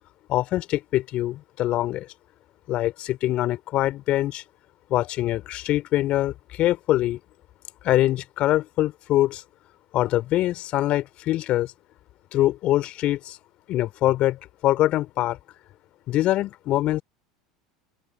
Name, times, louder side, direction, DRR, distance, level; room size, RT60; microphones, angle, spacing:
voice 1, 0.3-2.1 2.7-4.4 4.9-7.2 7.8-9.4 9.9-11.7 12.3-13.4 13.7-15.4 16.1-17.0, left 15 dB, 50° left, 3.3 m, -24 dB
open air
figure-of-eight pair, 75°, 3 cm